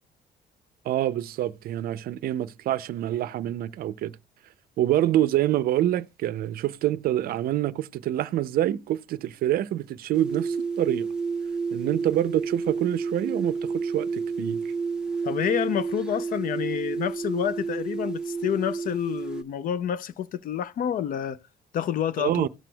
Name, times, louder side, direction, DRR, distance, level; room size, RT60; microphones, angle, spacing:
voice 1, 0.8-4.1 4.8-11.1 11.7-14.7 22.2-22.5, right 13 dB, 60° right, 0.5 m, -26 dB
sound 1, 10.1-19.4, right 5 dB, 5° right, 0.7 m, -30 dB
voice 2, 15.2-21.4 21.7-22.5, left 9 dB, 55° left, 0.5 m, -28 dB
17.0 x 5.9 x 2.2 m
cardioid pair, 110°, 17 cm